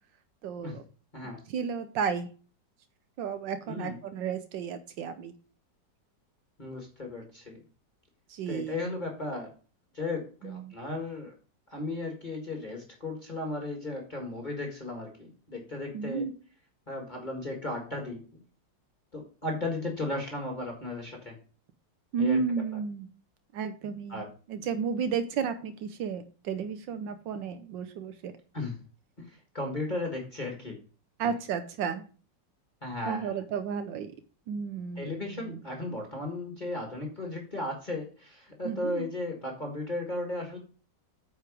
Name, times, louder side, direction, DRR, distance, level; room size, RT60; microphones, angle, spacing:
voice 1, 0.4-0.8 1.5-2.3 3.2-5.3 8.3-9.0 10.4-10.7 15.9-16.3 22.1-23.1 23.5-24.2 24.5-28.3 31.2-32.0 33.1-34.1 34.5-35.6 38.6-39.1, right 6 dB, 80° right, 9 dB, 1.4 m, -33 dB
voice 2, 3.7-4.0 6.6-7.6 8.5-9.5 9.9-11.3 11.7-16.2 16.9-18.4 19.1-21.4 22.2-22.4 22.7-22.8 24.1-24.3 28.5-28.8 29.2-30.8 32.8-33.3 35.0-40.6, left 2 dB, 25° left, 0 dB, 1.8 m, -35 dB
9.3 x 4.9 x 4.9 m, 0.37 s
omnidirectional pair, 2.0 m